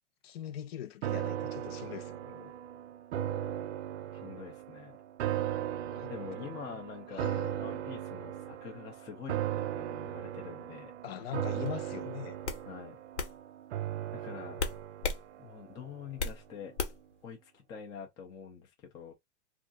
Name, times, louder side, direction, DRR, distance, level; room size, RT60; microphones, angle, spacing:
voice 1, 0.2-2.5 5.9-6.1 6.4-6.8 7.1-7.6 11.0-12.4, left 10 dB, 60° left, 0.7 m, -42 dB
sound 1, 1.0-16.3 16.7-16.8, right 11 dB, 80° right, 0.6 m, -37 dB
voice 2, 4.1-5.0 6.1-10.9 12.6-13.0 14.1-14.6 15.4-16.7 17.2-19.1, left 7 dB, 10° left, 0.3 m, -46 dB
sound 2, 11.7-11.9 12.4-12.6 13.2-13.3 14.6-15.2 15.6-16.4 16.8-17.1, left 4 dB, 90° left, 1.1 m, -34 dB
2.5 x 2.3 x 3.7 m
supercardioid pair, 150°, 34 cm